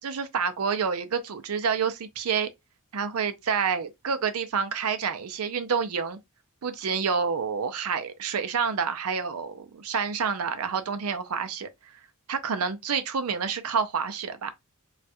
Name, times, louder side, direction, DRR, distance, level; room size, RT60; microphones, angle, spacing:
voice 1, 0.0-2.5 2.9-6.2 6.6-11.7 12.3-14.5, right 6 dB, 85° right, 0.5 m, -28 dB
4.2 x 2.4 x 2.2 m
head